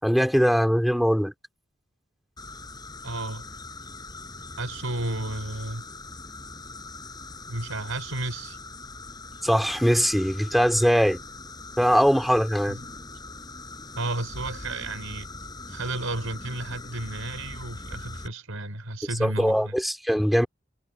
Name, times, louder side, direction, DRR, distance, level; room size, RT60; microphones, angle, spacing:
voice 1, 0.0-1.3 9.4-11.2 11.8-12.8 19.2-20.5, equal, ahead, 3.6 m, -21 dB
sound 1, 2.4-18.3, left 2 dB, 20° left, 6.3 m, -41 dB
voice 2, 3.0-3.5 4.6-5.8 7.5-8.6 12.7-12.8 13.9-15.3 15.7-19.7, right 2 dB, 85° right, 4.9 m, -32 dB
head